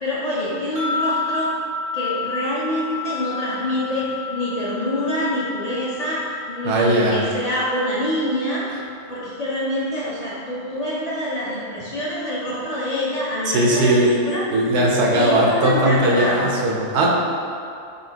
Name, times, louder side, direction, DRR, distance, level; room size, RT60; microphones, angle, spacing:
voice 1, 0.0-1.5 1.9-6.2 6.5-8.6 9.1-14.4 15.1-16.4, left 1 dB, 45° left, -8 dB, 0.5 m, -25 dB
sound 1, 0.8-10.0, left 3 dB, 20° right, 0.4 m, -32 dB
voice 2, 6.6-7.2 13.5-14.1 14.5-17.1, right 1 dB, 80° right, -2 dB, 0.9 m, -18 dB
4.2 x 2.8 x 2.8 m, 2.4 s
omnidirectional pair, 1.1 m